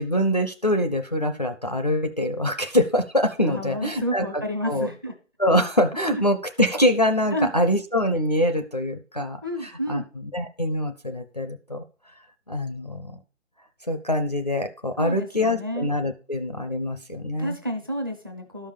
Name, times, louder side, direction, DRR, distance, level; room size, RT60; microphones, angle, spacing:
voice 1, 0.0-4.9 5.4-11.8 12.5-13.2 13.9-17.6, equal, 35° left, 5 dB, 0.5 m, -24 dB
voice 2, 3.5-5.1 6.1-6.2 7.3-7.5 9.4-10.1 15.0-15.9 17.3-18.7, equal, 20° right, 5 dB, 0.6 m, -30 dB
12.5 x 5.5 x 4.9 m, 0.35 s
hypercardioid pair, 180°, 38 cm